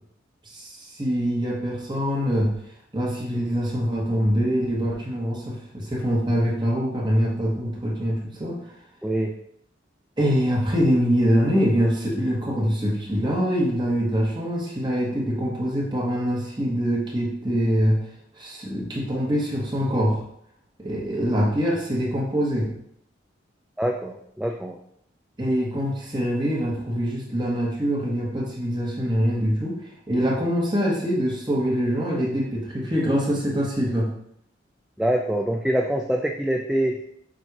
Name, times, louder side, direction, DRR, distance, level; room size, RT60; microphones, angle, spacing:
voice 1, 0.4-2.5 2.9-8.6 10.2-18.0 18.4-20.2 20.8-22.7 25.4-34.1, equal, 25° right, -4 dB, 1.3 m, -24 dB
voice 2, 9.0-9.3 23.8-24.8 35.0-37.0, right 1 dB, 5° right, 1 dB, 0.3 m, -25 dB
7.5 x 2.7 x 4.7 m, 0.70 s
head